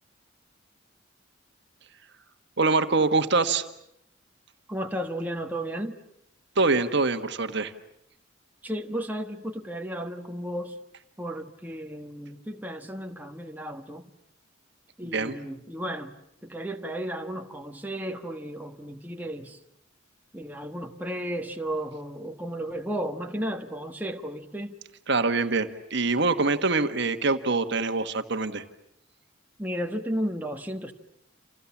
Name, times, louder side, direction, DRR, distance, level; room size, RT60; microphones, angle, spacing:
voice 1, 2.6-3.6 6.5-7.7 15.0-15.4 25.1-28.6, right 3 dB, 55° right, 8 dB, 1.5 m, -24 dB
voice 2, 4.7-6.0 8.6-10.8 11.2-14.1 15.0-19.6 20.3-24.7 29.6-30.9, equal, 10° right, 3 dB, 1.4 m, -34 dB
29.5 x 27.5 x 7.3 m, 0.74 s
head